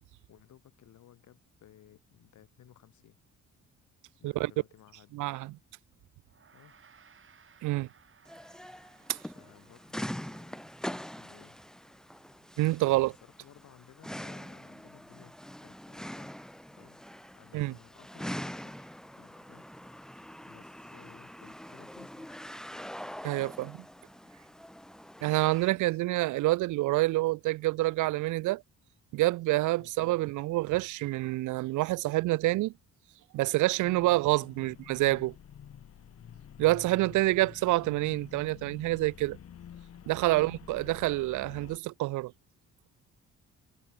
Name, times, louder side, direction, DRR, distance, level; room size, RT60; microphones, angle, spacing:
voice 1, 0.3-3.2 4.2-5.6 6.5-6.7 9.3-11.6 12.8-16.4 16.8-17.1 17.3-18.9 19.2-19.6 20.5-22.3 25.8-26.0 29.7-29.9 34.4-34.9 40.3-40.5, left 11 dB, 70° left, 3.4 m, -58 dB
voice 2, 5.1-5.5 7.6-7.9 9.1-9.2 12.6-13.1 17.5-17.7 23.2-23.8 25.2-28.6 29.1-32.7 33.3-35.3 36.6-39.4 40.1-42.3, right 19 dB, 80° right, 0.5 m, -27 dB
Gong, 6.3-15.8, right 6 dB, 40° right, 4.9 m, -64 dB
sound 1, 8.3-25.7, equal, ahead, 1.3 m, -43 dB
sound 2, 33.8-41.8, left 9 dB, 50° left, 1.7 m, -49 dB
cardioid pair, 90°, 30 cm